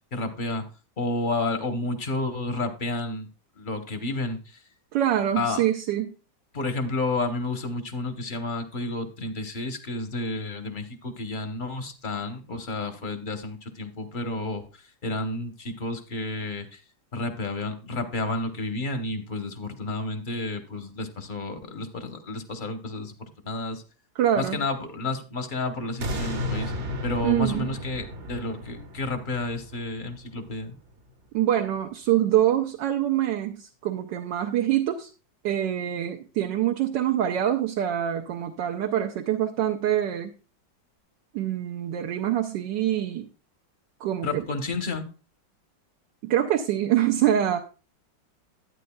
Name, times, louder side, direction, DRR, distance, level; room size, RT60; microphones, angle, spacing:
voice 1, 0.1-0.7 1.0-3.3 3.6-4.6 5.4-5.6 6.5-16.8 17.1-23.8 24.3-26.7 27.0-30.8 44.2-45.1, left 2 dB, 35° left, 7 dB, 0.8 m, -31 dB
voice 2, 4.9-6.1 24.1-24.6 27.2-27.7 31.3-35.1 35.4-40.3 41.3-43.3 44.0-44.4 46.2-47.6, right 11 dB, 75° right, 3 dB, 1.3 m, -25 dB
sound 1, 26.0-31.1 31.6-31.7, left 1 dB, 45° right, 1.0 m, -34 dB
11.5 x 9.3 x 2.3 m, 0.33 s
omnidirectional pair, 2.1 m